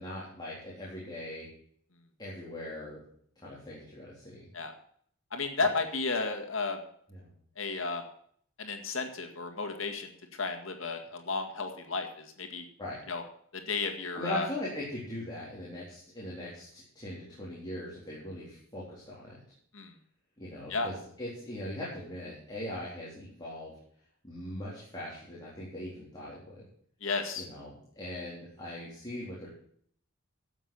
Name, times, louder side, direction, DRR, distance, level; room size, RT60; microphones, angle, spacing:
voice 1, 0.0-1.5 2.2-3.0 3.4-4.5 7.1-7.3 12.8-13.0 14.1-19.4 20.4-23.7 24.2-26.6 27.4-29.5, left 1 dB, 20° left, -7 dB, 3.9 m, -40 dB
voice 2, 5.3-6.8 7.6-8.0 8.6-10.1 10.4-12.6 13.1-13.2 13.5-14.5 19.7-19.9 20.7-20.9 27.0-27.5, left 4 dB, 70° left, 5 dB, 2.1 m, -33 dB
12.0 x 8.0 x 7.1 m, 0.62 s
head